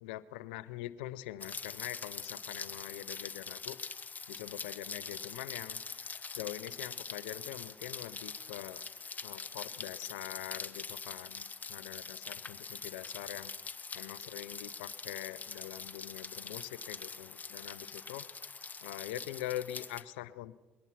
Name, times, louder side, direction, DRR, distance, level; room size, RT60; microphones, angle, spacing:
voice 1, 0.0-3.8 4.3-5.8 6.3-8.8 9.2-13.5 13.9-18.3 18.8-20.6, left 14 dB, 80° left, 17 dB, 0.6 m, -43 dB
Rain, 1.4-20.0, left 5 dB, 30° left, 1.0 m, -44 dB
21.5 x 11.0 x 5.9 m, 1.3 s
hypercardioid pair, 55°, 5 cm